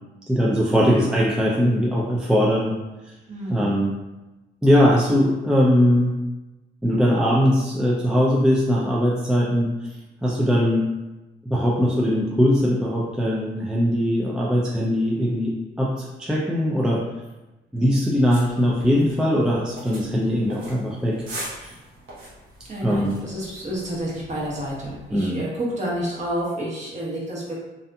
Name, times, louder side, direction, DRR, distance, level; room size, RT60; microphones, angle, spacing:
voice 1, 0.3-2.7 3.5-3.9 4.6-6.1 6.8-9.7 10.2-10.9 11.5-15.5 15.8-17.1 17.7-21.2 21.6-21.7 22.8-23.1 25.1-25.4, equal, 5° right, -5 dB, 0.4 m, -20 dB
voice 2, 3.3-3.7 22.7-27.6, right 1 dB, 35° right, -5 dB, 1.0 m, -29 dB
sound 1, 18.3-25.2, right 1 dB, 85° right, 0.9 m, -42 dB
2.6 x 2.5 x 2.3 m, 1.0 s
cardioid pair, 90°, 20 cm